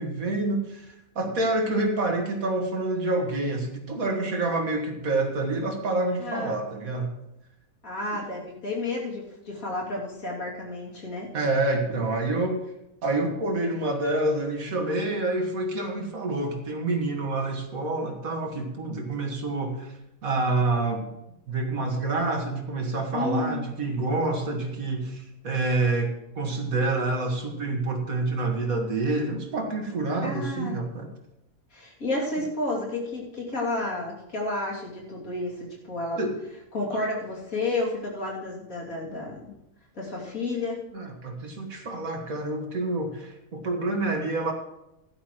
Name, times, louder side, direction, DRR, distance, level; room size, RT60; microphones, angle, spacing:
voice 1, 0.0-7.1 11.3-12.6 13.0-19.9 20.2-21.1 21.5-31.1 36.2-36.4 40.9-44.5, right 2 dB, 80° right, 2 dB, 2.3 m, -27 dB
voice 2, 6.2-6.6 7.8-11.3 23.1-23.6 30.2-30.8 31.7-36.2 36.7-39.6 39.9-40.8, left 2 dB, 80° left, -3 dB, 3.4 m, -31 dB
16.0 x 11.5 x 3.2 m, 0.87 s
omnidirectional pair, 1.4 m